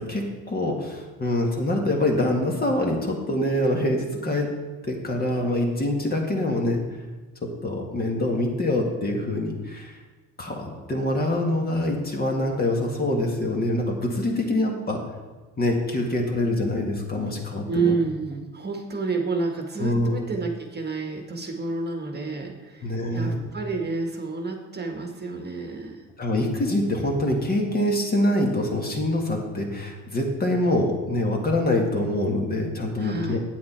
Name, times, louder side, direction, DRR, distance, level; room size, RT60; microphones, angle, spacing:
voice 1, 0.0-4.5 4.8-6.8 7.4-10.0 10.4-15.0 15.6-18.0 19.8-20.2 22.8-23.3 26.2-33.4, left 1 dB, 25° left, 1 dB, 1.9 m, -25 dB
voice 2, 17.7-26.0 33.0-33.4, right 4 dB, 30° right, 3 dB, 1.4 m, -29 dB
8.5 x 8.5 x 4.4 m, 1.3 s
supercardioid pair, 90°, 33 cm